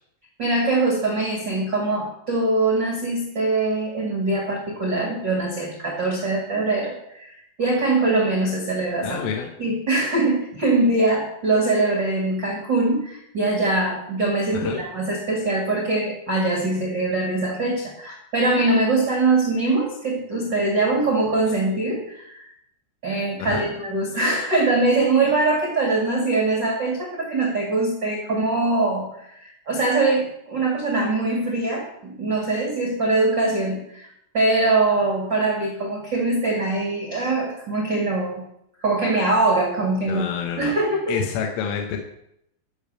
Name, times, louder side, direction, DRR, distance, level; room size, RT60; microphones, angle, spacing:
voice 1, 0.4-9.2 9.6-22.5 23.0-34.1 34.3-38.4 38.8-40.2 40.6-41.1, right 2 dB, 75° right, 0 dB, 1.0 m, -22 dB
voice 2, 9.0-9.5 14.5-14.8 23.4-23.7 40.1-40.7 41.1-42.0, left 7 dB, 75° left, 3 dB, 3.6 m, -28 dB
14.0 x 7.1 x 6.8 m, 0.76 s
omnidirectional pair, 6.0 m